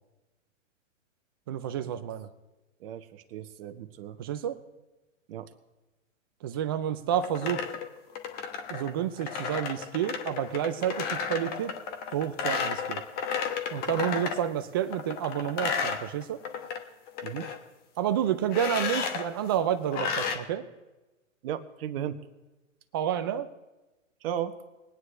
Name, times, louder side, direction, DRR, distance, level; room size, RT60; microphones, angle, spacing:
voice 1, 1.5-2.3 4.2-4.6 6.4-7.6 8.7-11.7 12.1-13.0 13.7-16.4 18.0-20.7 22.9-23.5, right 10 dB, 20° right, 12 dB, 0.3 m, -30 dB
voice 2, 2.8-4.2 5.3-5.5 17.2-17.5 21.4-22.2 24.2-24.6, right 10 dB, 45° right, 10 dB, 1.1 m, -35 dB
sound 1, 7.1-14.5 14.9-16.8 17.1-17.6 18.5-19.3 19.9-20.4, left 6 dB, 25° left, 1.0 m, -32 dB
21.5 x 9.6 x 3.2 m, 1.1 s
hypercardioid pair, 130°, 39 cm